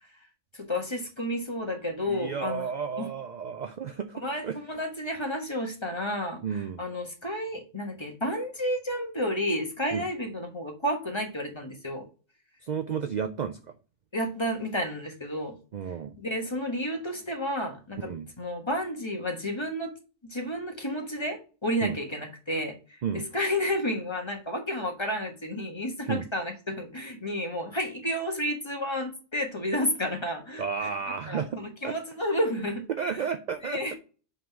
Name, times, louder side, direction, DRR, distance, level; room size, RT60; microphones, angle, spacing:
voice 1, 0.5-3.1 4.2-12.0 14.1-15.5 16.2-18.1 18.4-19.9 20.2-22.7 23.1-30.9 31.3-32.8 33.6-33.9, equal, 20° left, 3 dB, 1.3 m, -31 dB
voice 2, 2.1-4.6 6.4-6.8 9.9-10.1 12.6-13.6 15.7-16.2 18.0-18.3 21.8-22.0 23.0-23.3 26.1-26.3 30.6-32.0 32.9-33.9, right 7 dB, 65° right, 8 dB, 0.4 m, -32 dB
5.5 x 3.7 x 5.8 m, 0.36 s
omnidirectional pair, 1.3 m